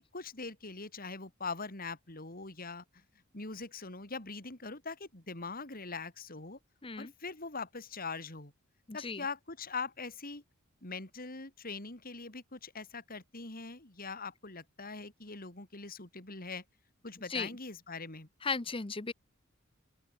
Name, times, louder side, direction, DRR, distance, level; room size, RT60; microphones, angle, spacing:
voice 1, 0.0-3.0 3.3-6.6 7.0-8.5 8.9-10.4 10.8-16.6 17.0-18.3, left 4 dB, 45° left, 4.2 m, -42 dB
voice 2, 8.9-9.2 17.3-17.5 18.4-19.1, left 4 dB, 25° left, 0.9 m, -36 dB
open air
head